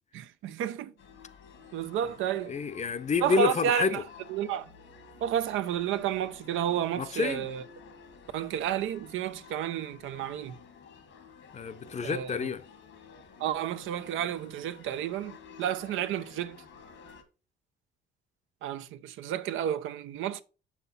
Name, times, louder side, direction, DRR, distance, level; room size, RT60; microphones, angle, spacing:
voice 1, 0.1-0.9 1.7-2.5 3.2-4.0 4.3-4.7 5.2-7.6 8.3-10.6 12.0-12.5 13.4-16.6 18.6-20.4, right 10 dB, 85° right, 0.6 m, -31 dB
Merry Go Round, 1.0-17.2, left 5 dB, 80° left, 1.6 m, -52 dB
voice 2, 2.5-4.0 7.0-7.5 11.5-12.6, left 5 dB, 35° left, 0.6 m, -29 dB
7.0 x 5.8 x 4.1 m
cardioid pair, 90°, 20 cm